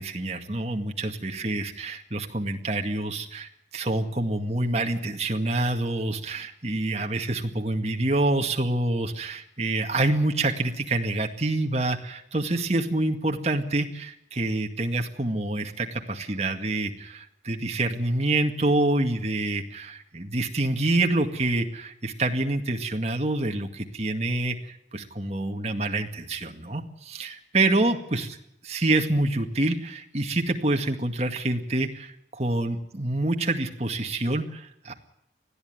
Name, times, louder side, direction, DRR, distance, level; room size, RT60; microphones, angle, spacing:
voice 1, 0.0-28.3 28.7-34.9, right 2 dB, 35° right, 4 dB, 2.1 m, -27 dB
20.5 x 14.0 x 9.4 m, 0.79 s
head